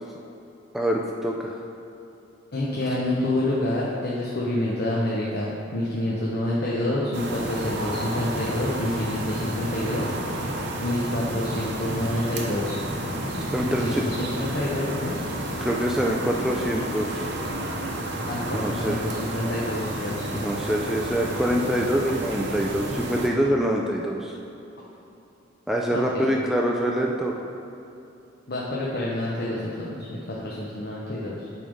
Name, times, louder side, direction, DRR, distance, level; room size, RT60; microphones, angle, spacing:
voice 1, 0.7-1.6 13.5-14.0 15.6-17.3 18.5-19.0 20.3-24.4 25.7-27.3, equal, ahead, -1 dB, 0.3 m, -25 dB
voice 2, 2.5-10.3 10.8-12.8 13.6-15.2 18.2-20.4 25.9-26.3 28.5-31.5, left 1 dB, 55° left, -5 dB, 0.8 m, -28 dB
sound 1, 7.1-23.3, right 1 dB, 65° right, 0.9 m, -31 dB
8.4 x 3.6 x 5.3 m, 2.8 s
head